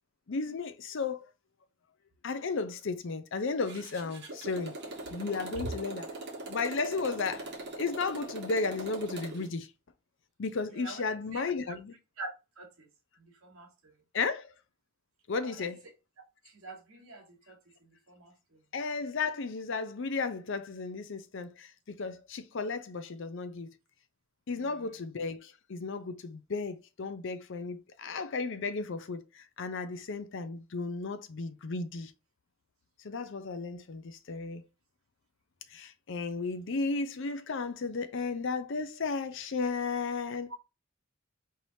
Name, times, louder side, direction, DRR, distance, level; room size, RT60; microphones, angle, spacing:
voice 1, 0.3-1.3 2.2-4.8 5.1-6.0 6.5-7.4 7.8-9.7 10.4-11.9 14.1-14.5 15.3-15.8 18.7-23.7 24.5-32.1 33.0-34.7 35.7-40.5, left 4 dB, 60° left, 0.5 m, -34 dB
Motorcycle, 3.6-9.5, right 2 dB, 50° right, 1.2 m, -41 dB
voice 2, 10.7-11.0 11.3-11.4 11.7-11.8 12.2-12.3 12.6-12.9 13.2-13.9 15.4-15.7 16.4-18.6 24.5-24.9 40.5-40.6, right 2 dB, 75° right, 1.4 m, -45 dB
4.6 x 3.2 x 2.7 m
head